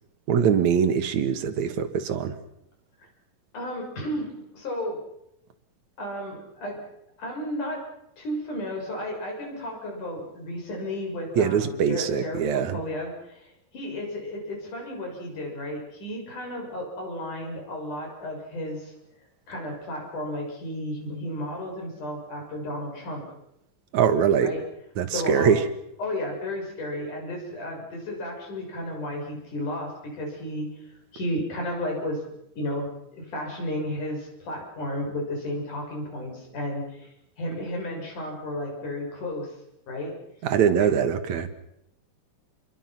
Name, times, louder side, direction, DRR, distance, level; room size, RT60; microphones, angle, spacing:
voice 1, 0.3-2.4 11.4-12.8 23.9-24.5 25.0-25.6 40.4-41.5, right 7 dB, 65° right, 9 dB, 2.9 m, -22 dB
voice 2, 3.5-5.0 6.0-6.8 7.2-7.8 8.2-18.9 19.5-23.2 24.4-24.6 25.1-25.5 26.0-32.2 32.6-39.6 39.9-40.1 40.8-40.9, left 1 dB, 75° left, 1 dB, 8.1 m, -33 dB
29.0 x 23.5 x 6.0 m, 0.80 s
omnidirectional pair, 3.6 m